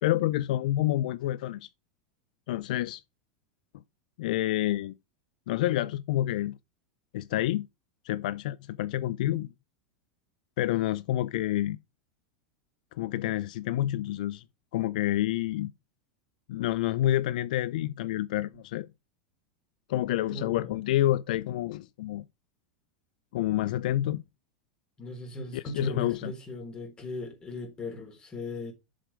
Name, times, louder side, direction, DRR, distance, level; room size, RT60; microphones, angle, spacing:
voice 1, 0.0-1.7 2.5-3.0 4.2-4.9 5.5-6.6 7.1-7.7 8.0-9.5 10.6-11.8 12.9-14.4 14.7-15.7 16.5-18.9 19.9-22.2 23.3-24.2 25.5-26.3, left 14 dB, 75° left, 0.4 m, -28 dB
voice 2, 20.3-20.7 25.0-28.7, left 2 dB, 20° left, 3.8 m, -38 dB
7.3 x 5.1 x 4.8 m
supercardioid pair, 135°, 4 cm